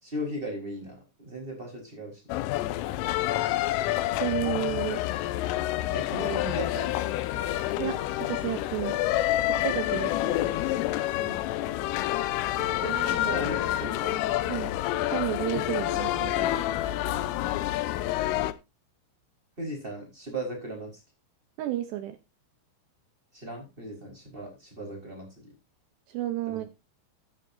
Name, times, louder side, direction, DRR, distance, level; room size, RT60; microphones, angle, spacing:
voice 1, 0.0-2.3 5.9-6.9 7.2-7.3 11.2-11.4 12.6-14.3 17.0-17.3 19.6-20.9 23.3-25.3 26.5-26.6, right 1 dB, 10° right, 1 dB, 4.2 m, -37 dB
sound 1, 2.3-18.5, left 14 dB, 85° left, 3.4 m, -28 dB
voice 2, 4.2-5.0 7.8-9.0 9.5-10.5 14.5-14.7 15.1-16.5 21.6-22.2 26.1-26.7, right 14 dB, 75° right, 9 dB, 2.6 m, -32 dB
14.5 x 10.0 x 2.7 m, 0.24 s
omnidirectional pair, 5.7 m